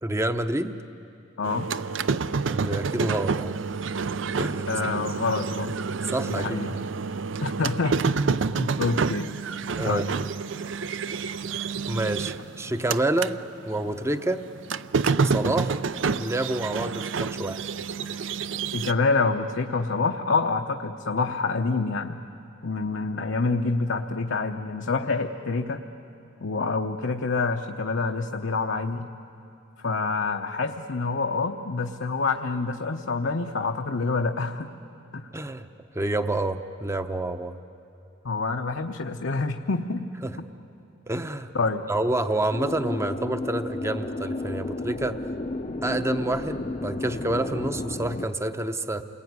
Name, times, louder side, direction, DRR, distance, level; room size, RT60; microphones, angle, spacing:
voice 1, 0.0-0.8 2.5-3.6 4.4-4.7 6.0-6.8 9.8-10.0 11.9-13.4 13.7-14.5 15.2-15.8 16.2-17.6 35.3-35.7 35.9-37.5 40.2-40.3 41.1-41.5 41.9-45.2 45.8-49.0, right 2 dB, 15° right, 9 dB, 0.7 m, -28 dB
voice 2, 1.4-1.7 4.7-5.7 6.3-6.7 7.4-8.0 8.3-9.3 9.9-10.1 18.7-22.2 22.6-25.8 26.4-29.1 29.8-34.7 35.1-35.3 38.2-40.1 41.5-41.8, left 3 dB, 75° left, 3 dB, 0.9 m, -27 dB
sound 1, 1.4-13.4 13.7-18.9, right 5 dB, 75° right, 0.5 m, -28 dB
sound 2, 42.5-48.3, left 2 dB, 35° left, 0.6 m, -32 dB
28.5 x 21.0 x 9.6 m, 2.8 s
head